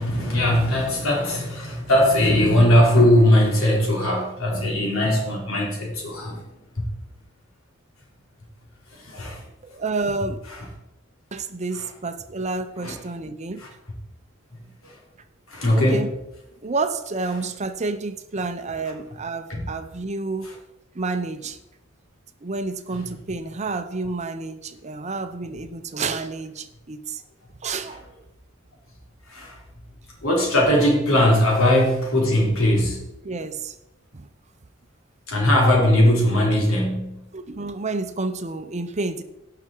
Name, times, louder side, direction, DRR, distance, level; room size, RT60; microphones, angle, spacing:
voice 1, 0.0-6.4 6.8-6.9 8.9-9.4 10.4-10.7 11.7-11.9 12.8-13.0 13.6-13.7 14.8-15.0 15.5-16.2 17.2-17.5 19.5-19.7 20.4-20.6 22.9-23.2 27.9-28.1 29.3-29.6 30.2-33.0 35.3-37.2, left 1 dB, 75° left, -1 dB, 3.5 m, -20 dB
voice 2, 9.6-10.4 11.3-13.6 15.7-16.1 16.6-20.5 20.9-21.6 22.4-27.2 27.6-28.2 33.2-33.8 34.1-34.3 37.3-39.2, right 3 dB, 35° right, 10 dB, 0.7 m, -29 dB
17.0 x 6.0 x 4.5 m, 0.91 s
head